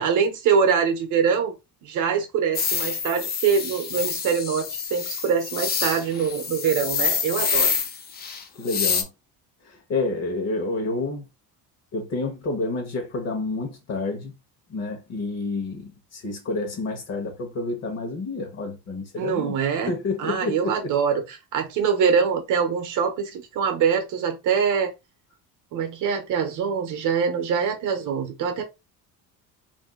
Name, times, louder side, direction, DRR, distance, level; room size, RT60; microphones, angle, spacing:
voice 1, 0.0-1.5 1.8-7.7 19.2-19.9 20.2-24.9 25.7-28.6, right 6 dB, 50° right, 0.7 m, -24 dB
sound 1, 2.5-9.0, left 6 dB, 25° left, 0.4 m, -27 dB
voice 2, 8.6-9.1 9.6-11.3 11.9-14.3 14.7-19.6 19.9-20.9, left 3 dB, 45° left, 1.0 m, -29 dB
2.6 x 2.3 x 3.6 m
cardioid pair, 160°, 38 cm